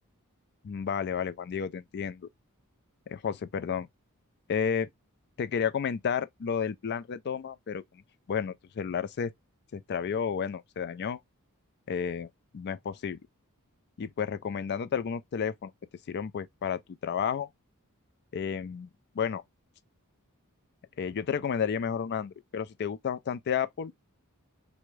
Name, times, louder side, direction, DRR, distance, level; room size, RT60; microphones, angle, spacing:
voice 1, 0.6-2.3 3.1-3.9 4.5-4.9 5.4-7.8 8.3-9.3 9.7-11.2 11.9-12.3 12.5-13.2 14.0-15.7 16.1-17.5 18.3-18.9 19.1-19.4 21.0-24.0, left 7 dB, 50° left, 0.4 m, -31 dB
3.5 x 2.1 x 3.1 m
head